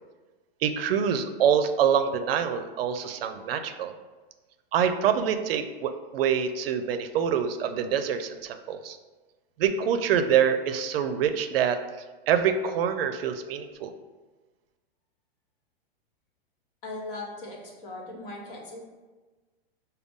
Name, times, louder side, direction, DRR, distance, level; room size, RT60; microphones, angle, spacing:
voice 1, 0.6-3.9 4.7-9.0 9.6-11.8 12.3-13.9, right 8 dB, 75° right, 9 dB, 0.5 m, -25 dB
voice 2, 16.8-18.8, left 2 dB, 65° left, -1 dB, 1.3 m, -39 dB
5.0 x 2.3 x 3.5 m, 1.3 s
hypercardioid pair, 130°, 29 cm